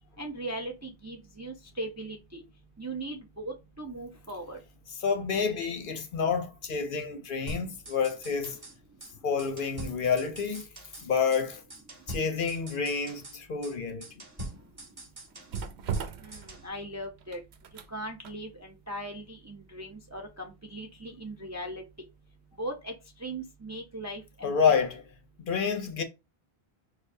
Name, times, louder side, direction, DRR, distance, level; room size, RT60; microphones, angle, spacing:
voice 1, 0.2-2.4 2.8-4.6 16.2-17.4 17.9-21.8 22.6-22.9 23.2-24.5, right 1 dB, 20° right, 0.5 m, -39 dB
voice 2, 5.0-8.6 9.2-10.7 11.0-11.6 12.1-14.0 24.4-25.0 25.4-26.0, left 6 dB, 60° left, 0.7 m, -28 dB
sound 1, 7.5-8.7 9.0-9.1 9.4-11.1 11.3-11.4 11.7-13.4 13.6-13.7 14.0-16.1 16.3-16.7, equal, 35° right, 1.9 m, -43 dB
sound 2, 14.3-22.2 22.5-22.7, right 6 dB, 85° right, 0.9 m, -41 dB
6.3 x 2.3 x 2.7 m
omnidirectional pair, 1.1 m